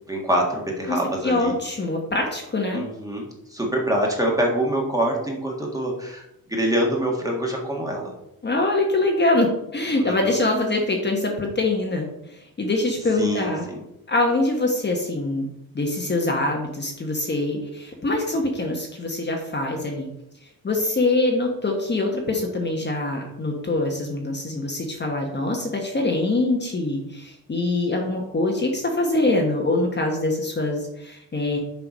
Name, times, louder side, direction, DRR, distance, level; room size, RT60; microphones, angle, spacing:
voice 1, 0.1-1.5 2.7-8.1 10.0-10.4 13.2-13.8, right 1 dB, 10° right, -1 dB, 1.7 m, -25 dB
voice 2, 0.9-2.8 8.4-13.6 14.1-15.5 15.7-20.1 20.6-31.6, left 2 dB, 30° left, 1 dB, 1.2 m, -24 dB
6.9 x 4.6 x 5.4 m, 0.81 s
wide cardioid pair, 140°, 35 cm